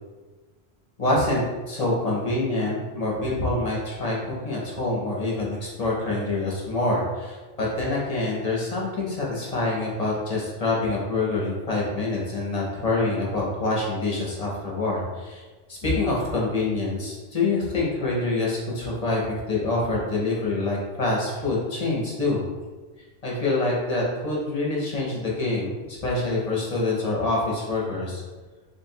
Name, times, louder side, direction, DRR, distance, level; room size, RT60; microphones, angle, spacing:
voice 1, 1.0-22.4 23.2-28.2, left 2 dB, 40° left, -4 dB, 0.9 m, -26 dB
3.1 x 2.5 x 4.4 m, 1.3 s
omnidirectional pair, 1.1 m